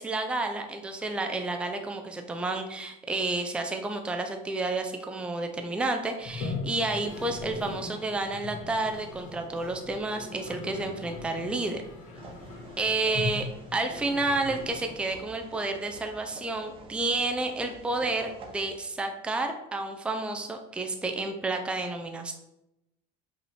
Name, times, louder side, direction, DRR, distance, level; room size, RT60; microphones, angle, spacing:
voice 1, 0.0-11.8 12.8-22.3, right 2 dB, 5° right, 4 dB, 0.5 m, -30 dB
Toilet flush, 6.2-15.3, left 3 dB, 45° left, 1.6 m, -39 dB
sound 1, 12.1-18.7, right 3 dB, 30° right, 1.0 m, -48 dB
5.4 x 4.9 x 4.2 m, 0.87 s
cardioid pair, 155°, 17 cm